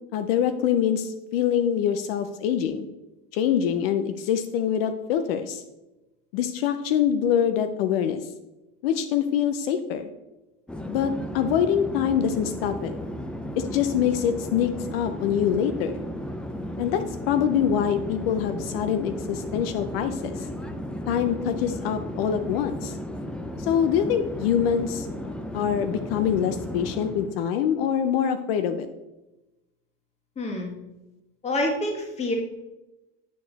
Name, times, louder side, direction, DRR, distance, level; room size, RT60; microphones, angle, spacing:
voice 1, 0.1-2.9 3.3-5.6 6.3-8.2 8.8-10.1 10.9-12.9 13.6-16.0 16.8-20.4 21.1-22.9 23.6-25.1 25.5-28.9, left 9 dB, 75° left, 9 dB, 0.6 m, -24 dB
Conversation / Chatter / Fixed-wing aircraft airplane, 10.7-27.4, equal, 5° left, 0.4 m, -34 dB
voice 2, 30.3-30.7 31.4-32.3, left 1 dB, 20° left, 2 dB, 1.6 m, -27 dB
9.2 x 4.8 x 4.0 m, 1.0 s
supercardioid pair, 135°, 30 cm